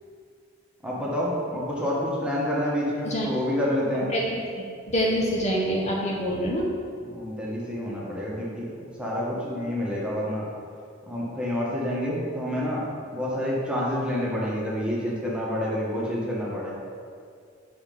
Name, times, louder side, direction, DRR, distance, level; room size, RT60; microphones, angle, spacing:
voice 1, 0.8-4.1 7.0-10.5 11.1-12.8 13.1-16.7, equal, 5° right, -5 dB, 1.4 m, -28 dB
voice 2, 4.1-4.4 4.9-6.7, equal, 35° left, -2 dB, 0.8 m, -25 dB
6.8 x 4.4 x 5.4 m, 2.3 s
head